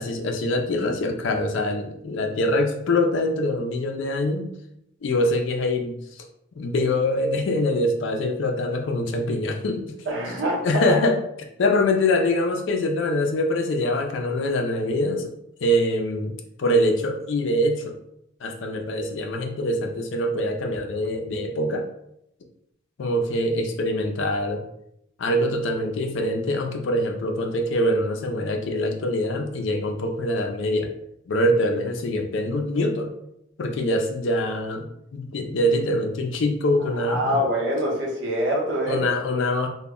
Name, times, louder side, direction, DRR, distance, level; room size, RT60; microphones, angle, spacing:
voice 1, 0.0-4.5 5.0-5.9 6.6-9.9 10.6-11.2 11.6-15.3 15.6-18.0 18.4-21.9 23.0-24.6 25.2-30.9 31.3-33.1 33.6-34.9 35.1-37.4 38.9-39.7, left 1 dB, 65° left, 4 dB, 0.4 m, -24 dB
voice 2, 10.1-11.0 37.0-39.1, equal, 60° right, -3 dB, 0.8 m, -25 dB
2.1 x 2.0 x 3.5 m, 0.78 s
head